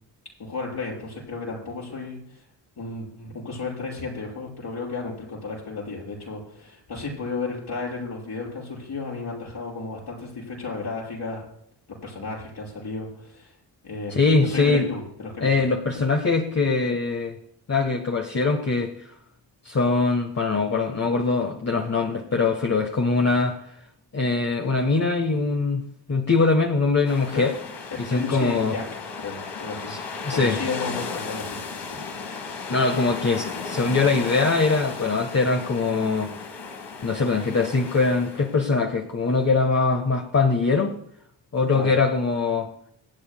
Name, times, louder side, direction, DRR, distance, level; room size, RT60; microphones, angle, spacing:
voice 1, 0.4-2.4 2.8-11.5 12.0-13.5 13.8-15.5 15.9-16.0 27.3-27.5 28.1-28.8 29.2-30.0 30.3-31.6 31.9-32.7 41.7-41.9, left 3 dB, 65° left, -4 dB, 5.7 m, -33 dB
voice 2, 14.1-14.9 15.4-17.4 17.7-18.9 19.6-23.6 24.1-27.5 28.0-28.8 29.9-30.6 32.7-36.4 37.0-41.0 41.5-42.7, left 4 dB, 40° left, 2 dB, 1.3 m, -22 dB
sound 1, 27.0-38.6, left 4 dB, 85° left, 2.0 m, -35 dB
25.0 x 8.7 x 2.2 m, 0.71 s
cardioid pair, 75°, 42 cm